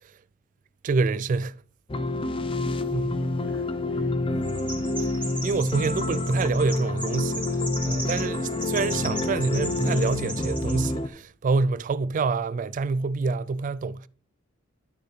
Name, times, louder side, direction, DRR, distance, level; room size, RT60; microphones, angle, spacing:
voice 1, 0.8-1.5 2.9-3.3 5.4-14.1, right 4 dB, 40° right, 0.3 m, -27 dB
sound 1, 1.9-11.1, left 2 dB, 25° left, 0.6 m, -28 dB
voice 2, 2.1-4.7, right 2 dB, 70° left, 1.5 m, -52 dB
Chirp tweet, 4.4-10.9, right 1 dB, 5° left, 3.1 m, -37 dB
11.5 x 6.6 x 3.3 m
head